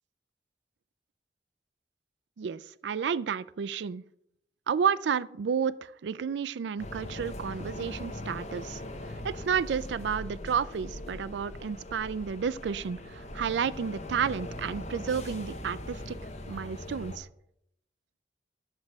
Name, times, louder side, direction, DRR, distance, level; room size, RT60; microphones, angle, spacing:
voice 1, 2.4-4.0 4.7-8.8 9.2-16.2 16.5-17.3, right 7 dB, 90° right, 17 dB, 0.4 m, -31 dB
sound 1, 6.8-17.2, left 1 dB, 40° left, 0.9 m, -40 dB
6.4 x 6.0 x 7.3 m, 0.75 s
head